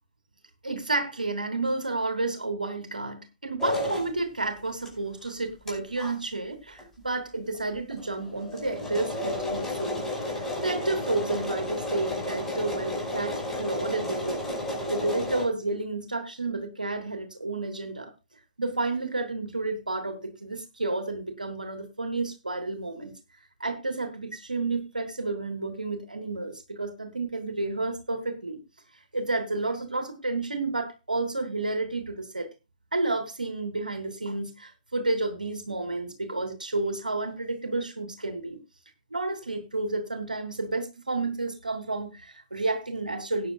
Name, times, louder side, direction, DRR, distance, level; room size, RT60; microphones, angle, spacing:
voice 1, 0.6-14.4 14.9-18.1 18.6-23.1 23.6-28.6 29.1-32.5 32.9-38.6 39.1-43.5, right 2 dB, 85° right, 7 dB, 2.8 m, -31 dB
sound 1, 3.6-4.1 4.8-4.9 5.3-5.4 5.7-5.8 6.0-6.1 6.8-6.9 7.1-7.2 7.5-7.6 7.9-15.5, left 1 dB, 10° left, 5.3 m, -32 dB
18.5 x 9.6 x 2.4 m, 0.26 s
figure-of-eight pair, 125°, 4 cm